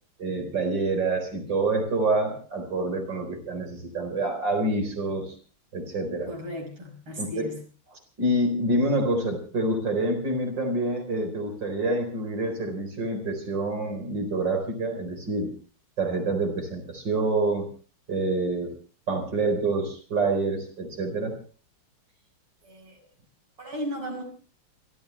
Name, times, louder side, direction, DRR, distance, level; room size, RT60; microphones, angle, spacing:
voice 1, 0.2-5.4 5.7-6.3 7.2-7.5 8.2-15.5 16.0-17.7 18.1-18.7 19.1-21.3, right 2 dB, 55° right, 5 dB, 4.9 m, -27 dB
voice 2, 6.3-7.6 22.6-23.0 23.6-24.2, equal, 70° right, 2 dB, 6.4 m, -35 dB
29.0 x 13.5 x 3.3 m, 0.38 s
omnidirectional pair, 2.4 m